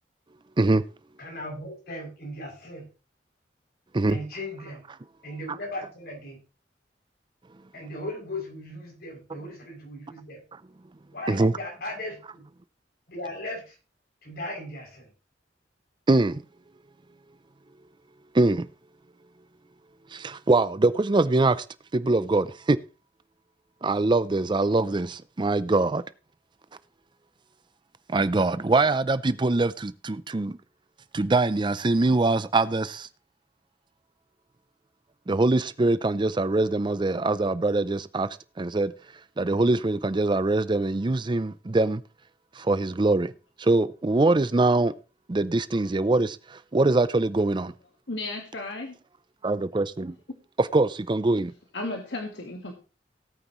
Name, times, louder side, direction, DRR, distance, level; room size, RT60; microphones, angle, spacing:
voice 1, 1.2-2.9 4.1-4.8 5.2-6.4 7.7-10.4 11.1-12.4 13.1-13.8 14.2-15.1, left 1 dB, 60° left, 7.0 m, -37 dB
voice 2, 11.3-11.6 16.1-16.4 18.3-18.7 20.1-21.6 21.9-22.8 23.8-26.0 28.1-30.6 31.1-33.1 35.3-38.3 38.6-38.9 39.4-42.0 42.6-43.3 43.6-44.9 45.3-47.7 49.4-50.2 50.6-51.5, right 2 dB, 25° right, 0.5 m, -23 dB
voice 3, 48.1-49.0 51.7-52.7, left 2 dB, 80° left, 1.7 m, -34 dB
17.5 x 9.1 x 3.1 m
head